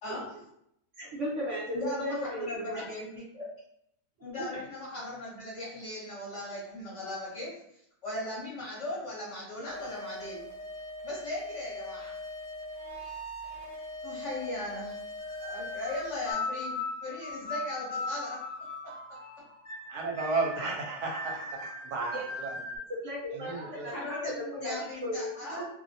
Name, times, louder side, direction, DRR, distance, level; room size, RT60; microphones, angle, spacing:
voice 1, 1.0-2.9 3.3-3.4 22.1-22.3 22.9-24.3 24.6-24.7 25.0-25.7, equal, 60° right, -5 dB, 0.9 m, -35 dB
voice 2, 1.7-3.3 4.2-7.5 8.0-10.5 11.0-12.1 14.0-15.0 15.4-18.4 23.5-25.7, left 1 dB, 55° left, -6 dB, 1.1 m, -38 dB
sound 1, 9.7-16.3, left 1 dB, 80° left, 0.3 m, -41 dB
sound 2, 15.2-22.8, left 3 dB, 25° left, 0.8 m, -38 dB
voice 3, 19.9-22.6 23.3-24.0, right 3 dB, 80° right, 0 dB, 1.1 m, -34 dB
2.7 x 2.1 x 2.6 m, 0.75 s
omnidirectional pair, 1.7 m